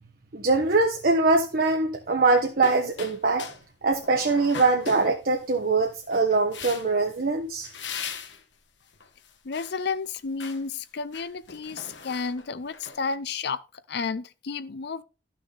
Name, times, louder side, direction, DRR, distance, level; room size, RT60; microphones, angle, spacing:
voice 1, 0.3-3.4 3.8-7.7, right 3 dB, 55° right, 1.1 m, -23 dB
sound 1, 2.4-3.6 3.9-5.6 6.1-7.1 7.6-8.4 8.9-9.8 10.2-10.6 11.0-13.2, left 6 dB, 90° left, 1.6 m, -39 dB
voice 2, 9.4-13.6 13.9-15.0, left 5 dB, 65° left, 0.6 m, -31 dB
12.0 x 6.3 x 4.0 m
head